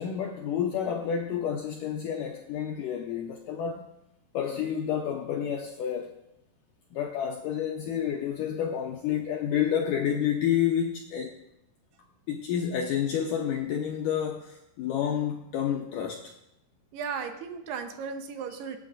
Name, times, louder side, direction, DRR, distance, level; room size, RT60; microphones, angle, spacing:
voice 1, 0.0-3.9 4.3-6.1 6.9-11.3 12.3-16.3, left 9 dB, 85° left, 1 dB, 1.9 m, -29 dB
voice 2, 16.9-18.8, right 6 dB, 80° right, 6 dB, 2.9 m, -35 dB
24.0 x 9.0 x 2.5 m, 0.83 s
omnidirectional pair, 4.7 m